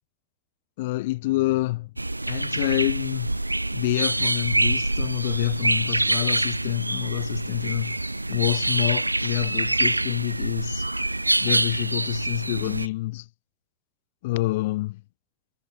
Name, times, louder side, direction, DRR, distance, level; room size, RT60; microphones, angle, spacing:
voice 1, 0.8-1.9 2.3-3.4 3.7-8.0 8.3-10.9 11.4-13.3 14.2-15.0, left 19 dB, 50° left, 0.9 m, -27 dB
sound 1, 2.0-12.9, right 2 dB, 85° right, 0.3 m, -25 dB
figure-of-eight pair, 90°, 0 cm